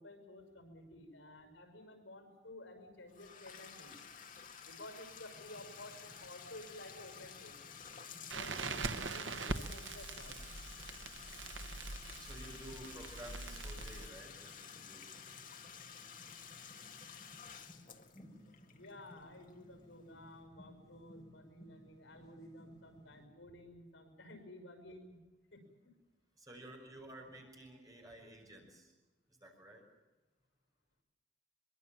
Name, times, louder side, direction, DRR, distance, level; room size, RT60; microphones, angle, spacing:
voice 1, 0.0-4.0 4.7-7.6 8.3-10.4 18.7-25.2 25.5-26.0, left 1 dB, 75° left, 7 dB, 6.0 m, -53 dB
Bathtub (filling or washing), 3.1-19.8, left 7 dB, 45° left, 1.9 m, -52 dB
sound 1, 5.3-23.3, equal, 20° left, 5.1 m, -62 dB
Crackle, 8.3-14.1, right 3 dB, 80° right, 1.2 m, -42 dB
voice 2, 12.2-15.1 26.4-28.9 29.4-29.8, right 1 dB, 20° right, 1 dB, 6.3 m, -53 dB
24.0 x 22.5 x 7.4 m, 1.1 s
head